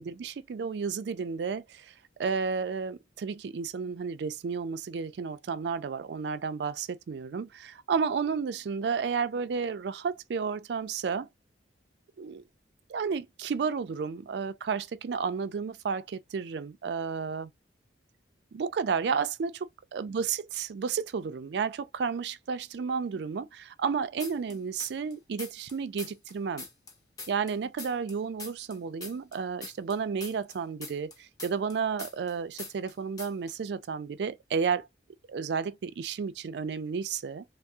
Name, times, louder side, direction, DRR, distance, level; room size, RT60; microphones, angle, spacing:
voice 1, 0.0-1.9 2.2-11.3 12.2-12.4 12.9-17.5 18.5-26.7 27.3-34.9 35.3-37.4, right 6 dB, 70° right, 0.3 m, -32 dB
sound 1, 24.2-25.1 25.4-28.1 28.4-32.3 32.6-32.9 33.2-33.5, left 3 dB, 20° left, 0.6 m, -42 dB
3.3 x 2.0 x 2.7 m
head